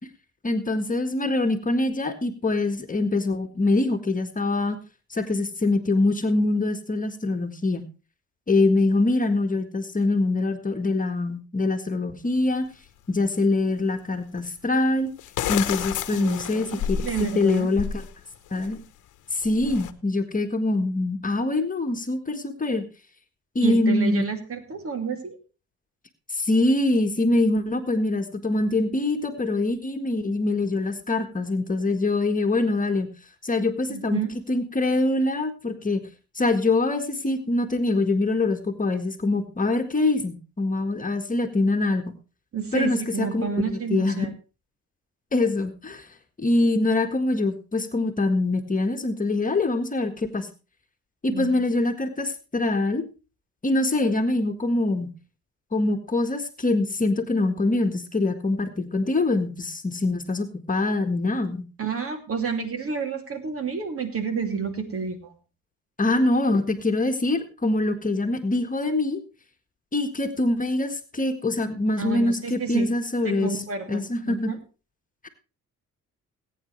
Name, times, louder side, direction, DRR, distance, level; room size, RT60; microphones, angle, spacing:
voice 1, 0.4-4.8 5.1-7.8 8.5-12.7 13.1-15.1 15.5-17.1 17.3-18.0 18.5-18.8 19.3-22.8 23.5-24.2 26.3-33.1 33.4-34.2 34.5-36.0 36.3-42.1 42.7-44.2 45.3-46.1 46.4-50.5 51.2-53.0 53.6-55.1 55.7-61.6 66.0-69.2 69.9-73.6 73.9-74.5 75.2-75.3, left 2 dB, 25° left, 6 dB, 1.6 m, -24 dB
sound 1, 12.4-12.5 14.4-14.5 15.2-18.1 18.5-18.8 19.4-19.9, left 9 dB, 80° left, 1.1 m, -31 dB
voice 2, 16.1-17.7 23.6-25.4 33.9-34.3 42.5-44.3 51.3-51.5 61.8-65.3 72.0-72.9 73.2-74.6, right 6 dB, 50° right, 6 dB, 2.7 m, -30 dB
20.5 x 9.1 x 3.2 m, 0.33 s
cardioid pair, 90°, 30 cm